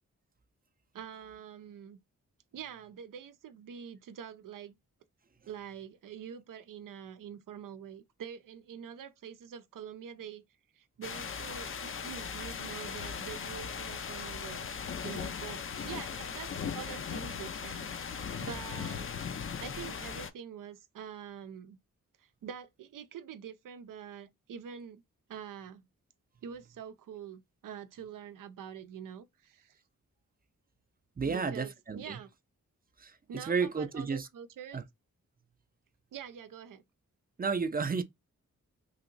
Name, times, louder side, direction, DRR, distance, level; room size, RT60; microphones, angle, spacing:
voice 1, 0.9-2.0 2.5-4.7 5.5-10.4 10.7-14.7 15.0-19.1 19.6-21.8 22.2-25.0 25.3-25.8 26.4-29.8 31.2-32.3 33.3-34.8 36.1-36.8, right 8 dB, 80° right, 0.6 m, -45 dB
sound 1, 11.0-20.3, left 6 dB, 40° left, 0.5 m, -38 dB
voice 2, 31.2-32.2 33.0-34.3 34.7-34.8 37.4-38.0, right 5 dB, 30° right, 0.5 m, -32 dB
3.1 x 2.8 x 2.5 m
cardioid pair, 75°, 32 cm